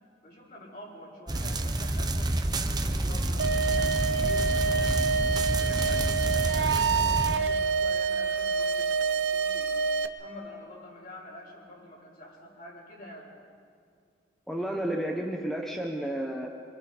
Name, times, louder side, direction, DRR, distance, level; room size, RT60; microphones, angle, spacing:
voice 1, 0.2-5.0 5.5-9.7 10.1-13.3, left 1 dB, 55° left, -5 dB, 7.2 m, -46 dB
sound 1, 1.3-7.4, right 1 dB, 20° right, 0.9 m, -29 dB
sound 2, 3.4-10.1, right 5 dB, 65° right, 0.8 m, -27 dB
voice 2, 14.5-16.5, right 1 dB, ahead, 0 dB, 1.2 m, -31 dB
26.5 x 25.0 x 4.4 m, 2.2 s
head